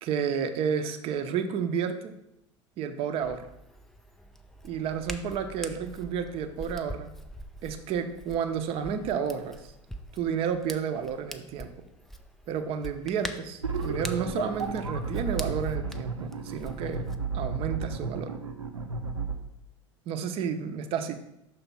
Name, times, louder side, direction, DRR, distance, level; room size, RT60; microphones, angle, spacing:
voice 1, 0.0-2.1 2.8-3.4 4.6-7.1 7.6-9.6 10.1-11.7 12.5-17.0 17.3-18.3 20.1-21.2, right 7 dB, 35° right, 8 dB, 0.7 m, -31 dB
Hands, 3.2-17.2, equal, ahead, 0.4 m, -44 dB
sound 1, 13.6-19.3, right 4 dB, 80° right, 0.6 m, -32 dB
5.9 x 3.4 x 5.6 m, 0.85 s
figure-of-eight pair, 80°, 16 cm